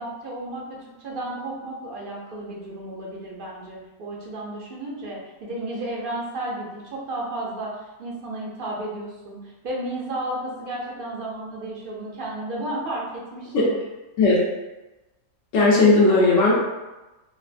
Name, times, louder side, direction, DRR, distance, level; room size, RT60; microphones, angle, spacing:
voice 1, 0.0-13.7, right 1 dB, 55° right, -3 dB, 0.6 m, -33 dB
voice 2, 15.5-16.5, left 2 dB, 65° left, -5 dB, 1.0 m, -16 dB
3.3 x 2.5 x 2.5 m, 1.1 s
omnidirectional pair, 1.5 m